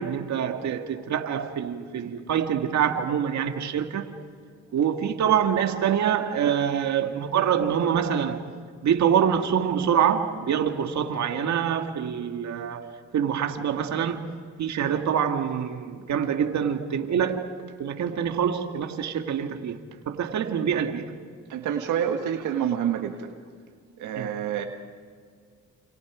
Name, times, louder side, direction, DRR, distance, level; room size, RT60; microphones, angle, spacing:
voice 1, 0.0-4.1 4.7-21.1 24.2-24.3, right 8 dB, 65° right, 2.0 m, -26 dB
voice 2, 21.5-23.3 24.0-24.7, right 9 dB, 85° right, 1.7 m, -27 dB
29.0 x 28.5 x 5.1 m
cardioid pair, 90°, 30 cm